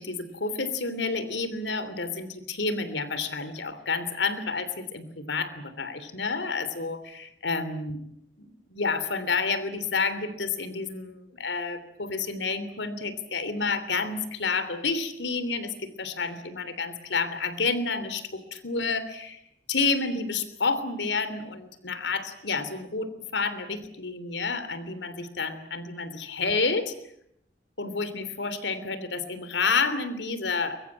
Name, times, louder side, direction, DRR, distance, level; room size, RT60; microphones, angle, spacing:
voice 1, 0.0-8.0 8.4-19.4 19.7-26.9 27.8-30.8, left 4 dB, 90° left, 12 dB, 3.2 m, -30 dB
23.5 x 22.5 x 8.7 m, 0.71 s
head